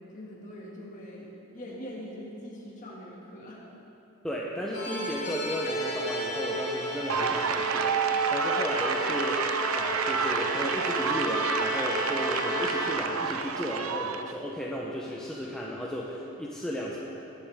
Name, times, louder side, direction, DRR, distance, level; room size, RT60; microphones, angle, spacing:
voice 1, 0.1-3.6, equal, 35° left, -4 dB, 2.2 m, -42 dB
voice 2, 4.2-9.5 9.7-17.0, equal, 5° left, -4 dB, 0.7 m, -34 dB
sound 1, 4.7-9.5, left 3 dB, 60° left, 3.0 m, -40 dB
Musical instrument, 4.7-13.3, equal, 40° right, 1.8 m, -33 dB
sound 2, 7.1-14.3, right 6 dB, 70° right, 0.5 m, -29 dB
19.0 x 8.6 x 3.6 m, 2.9 s
head